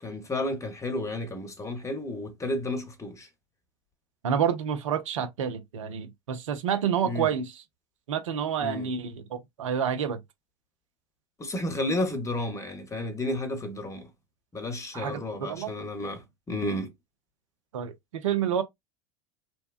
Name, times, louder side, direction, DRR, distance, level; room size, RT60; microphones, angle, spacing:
voice 1, 0.0-3.3 7.0-7.3 8.6-8.9 11.4-14.1 14.5-16.2 16.5-16.9, left 1 dB, 20° left, 0.9 m, -32 dB
voice 2, 4.2-7.6 8.1-10.2 14.9-15.7 17.7-18.6, right 8 dB, 80° right, 0.6 m, -29 dB
2.8 x 2.1 x 2.4 m
hypercardioid pair, 85°, 16 cm